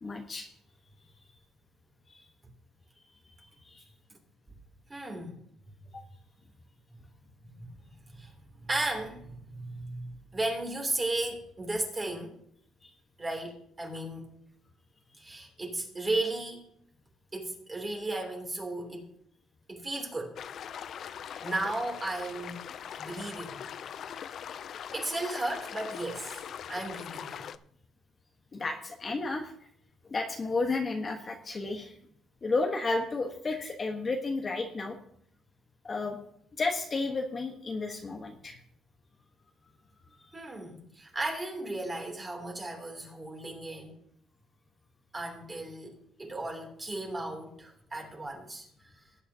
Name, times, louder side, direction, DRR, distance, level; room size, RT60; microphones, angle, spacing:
voice 1, 0.0-0.5 2.1-2.3 3.6-3.8 12.8-12.9 28.5-29.5 30.0-32.0 32.4-35.0 35.8-36.2 36.6-38.6 40.1-40.3, left 3 dB, 30° left, 2 dB, 1.3 m, -32 dB
voice 2, 4.9-5.4 7.4-7.7 8.1-12.3 13.2-14.3 15.2-16.6 17.3-19.1 19.7-20.4 21.4-22.6 23.0-23.7 24.9-26.4 26.7-27.4 40.3-44.0 45.1-48.7, right 2 dB, 20° right, 1 dB, 3.0 m, -35 dB
sound 1, 20.4-27.6, left 8 dB, 55° left, 0.4 m, -41 dB
19.0 x 8.8 x 2.9 m, 0.68 s
cardioid pair, 125°, 0 cm